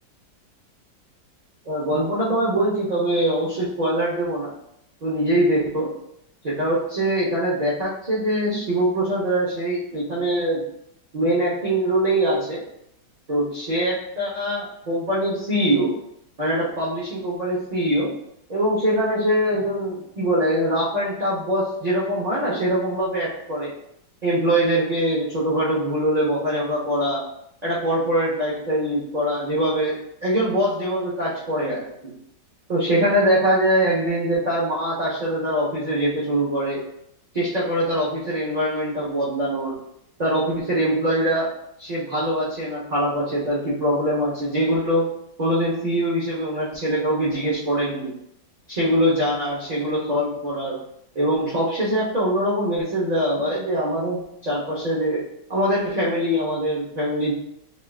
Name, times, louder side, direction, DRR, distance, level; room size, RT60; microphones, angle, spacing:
voice 1, 1.7-4.6 5.0-5.9 6.4-10.6 11.1-12.6 13.3-15.9 16.4-18.1 18.5-23.7 24.2-27.2 27.6-31.8 32.7-36.8 37.3-39.7 40.2-41.5 41.8-45.1 45.4-48.1 48.7-50.8 51.1-55.2 55.5-57.3, right 1 dB, 45° right, -7 dB, 0.5 m, -23 dB
6.2 x 2.4 x 2.3 m, 0.77 s
omnidirectional pair, 1.9 m